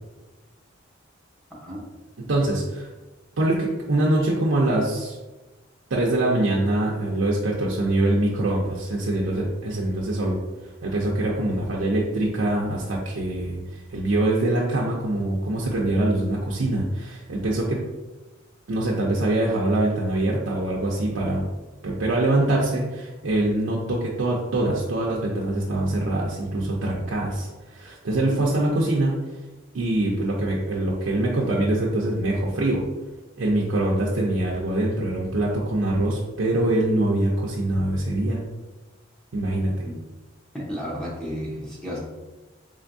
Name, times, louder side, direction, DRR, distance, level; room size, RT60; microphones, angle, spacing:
voice 1, 2.3-2.9 3.4-5.2 5.9-10.4 10.8-17.8 18.7-21.5 21.8-29.2 29.7-32.9 33.4-38.4 39.3-39.7, right 1 dB, 70° right, -4 dB, 0.5 m, -24 dB
voice 2, 40.5-42.0, equal, 5° left, -5 dB, 0.8 m, -32 dB
3.7 x 3.4 x 2.6 m, 1.1 s
head